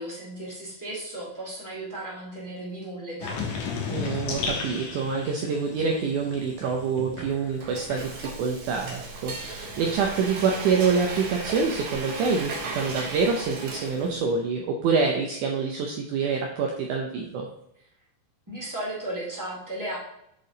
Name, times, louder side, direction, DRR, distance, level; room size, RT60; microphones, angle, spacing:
voice 1, 0.0-3.6 18.5-20.0, right 1 dB, 10° right, -6 dB, 1.2 m, -35 dB
sound 1, 3.2-8.6 8.9-10.6, left 5 dB, 70° left, 2.2 m, -35 dB
voice 2, 3.9-17.5, right 5 dB, 80° right, 1 dB, 1.8 m, -26 dB
Frying (food), 7.3-14.3, right 3 dB, 65° right, 1.4 m, -36 dB
7.5 x 4.2 x 3.8 m, 0.78 s
omnidirectional pair, 4.3 m